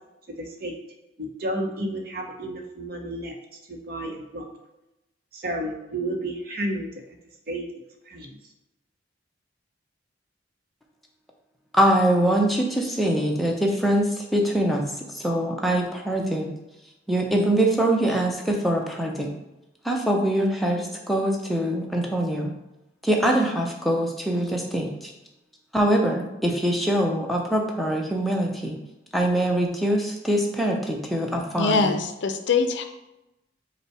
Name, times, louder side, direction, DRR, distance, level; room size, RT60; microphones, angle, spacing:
voice 1, 0.4-0.7 1.2-3.3 3.7-4.4 5.3-6.9 7.5-7.6 8.1-8.3, right 1 dB, 50° right, 2 dB, 0.7 m, -31 dB
voice 2, 11.7-14.9 15.1-16.5 17.1-19.3 19.8-22.5 23.0-25.1 25.7-28.8 29.1-31.9, right 1 dB, ahead, -1 dB, 0.5 m, -23 dB
voice 3, 31.6-32.8, left 4 dB, 70° left, 7 dB, 0.4 m, -23 dB
5.3 x 2.1 x 4.7 m, 0.95 s
head